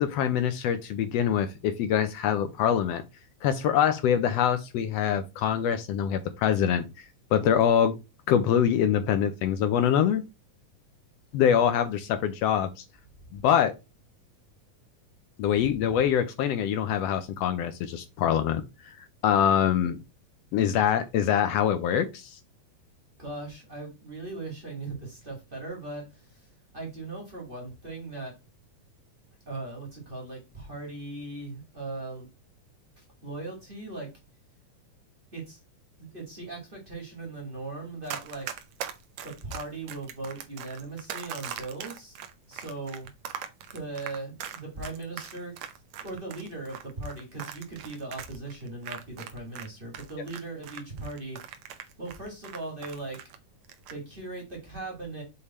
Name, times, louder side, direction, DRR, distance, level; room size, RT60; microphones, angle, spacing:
voice 1, 0.0-3.0 3.4-7.0 7.3-8.0 8.3-10.2 11.3-12.8 13.3-13.7 15.4-18.6 19.2-20.0 20.5-22.4, left 9 dB, 80° left, 1.5 m, -24 dB
voice 2, 15.5-15.9 23.2-26.5 26.7-28.3 29.5-32.3 33.0-34.1 35.3-35.6 36.0-38.5 39.2-42.2 42.5-43.1 43.7-45.5 46.0-51.4 52.0-53.2 53.9-55.2, right 2 dB, 20° right, 1.7 m, -39 dB
Run, 38.1-49.7 49.9-53.4 53.6-54.0, right 9 dB, 85° right, 1.2 m, -40 dB
6.7 x 3.5 x 4.2 m
omnidirectional pair, 3.5 m